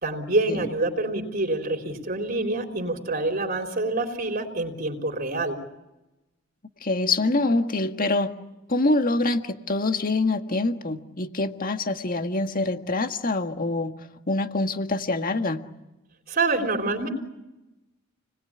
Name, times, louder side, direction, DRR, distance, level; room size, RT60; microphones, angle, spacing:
voice 1, 0.0-5.6 16.3-17.1, right 2 dB, 50° right, 3 dB, 3.9 m, -26 dB
voice 2, 6.8-8.3 8.7-13.9 14.3-15.6, left 2 dB, 45° left, 7 dB, 1.7 m, -25 dB
29.5 x 20.5 x 9.9 m, 0.98 s
head